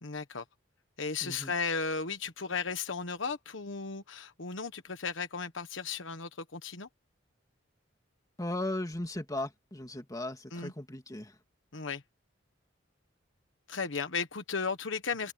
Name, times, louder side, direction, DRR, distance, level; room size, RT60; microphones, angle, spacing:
voice 1, 0.0-0.4 1.0-6.9 10.5-10.7 11.7-12.0 13.7-15.3, left 5 dB, 70° left, 1.3 m, -35 dB
voice 2, 1.2-1.5 8.4-11.4, left 1 dB, 20° left, 2.6 m, -37 dB
open air
head